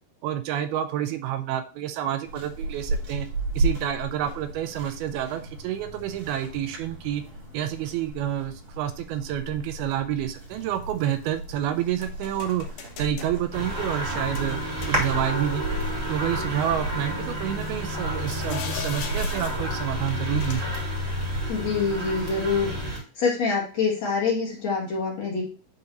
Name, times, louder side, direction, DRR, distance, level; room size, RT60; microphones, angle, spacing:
voice 1, 0.2-3.3 3.6-7.2 7.5-15.6 16.1-20.8, right 11 dB, 80° right, 9 dB, 2.4 m, -29 dB
sound 1, 2.2-21.5, right 2 dB, 60° right, 5.1 m, -35 dB
sound 2, 5.9-6.2 9.5-9.9 10.4-11.5 12.0-13.4 14.3-15.4 15.8-15.9 17.6-19.8 20.4-20.8, left 8 dB, 75° left, 2.7 m, -40 dB
sound 3, 13.5-23.0, equal, 20° right, 2.6 m, -30 dB
voice 2, 21.5-25.4, left 5 dB, 50° left, -4 dB, 2.6 m, -26 dB
9.4 x 3.9 x 2.9 m, 0.38 s
omnidirectional pair, 4.6 m